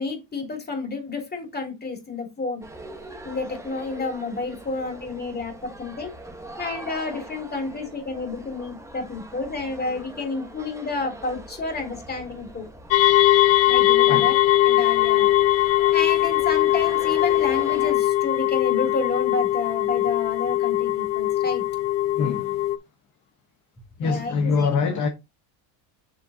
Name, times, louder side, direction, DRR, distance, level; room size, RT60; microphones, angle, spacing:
voice 1, 0.0-2.6 3.2-6.1 6.6-12.7 13.7-14.3 14.6-15.3 15.6-21.6 24.0-24.7, left 3 dB, 20° left, 2.9 m, -30 dB
sound 1, 2.6-17.9, right 1 dB, 5° right, 1.3 m, -42 dB
sound 2, 12.9-22.8, left 14 dB, 60° left, 0.8 m, -20 dB
voice 2, 22.2-22.6 24.0-25.1, left 5 dB, 40° left, 1.1 m, -24 dB
7.5 x 6.8 x 2.8 m
cardioid pair, 130°, 49 cm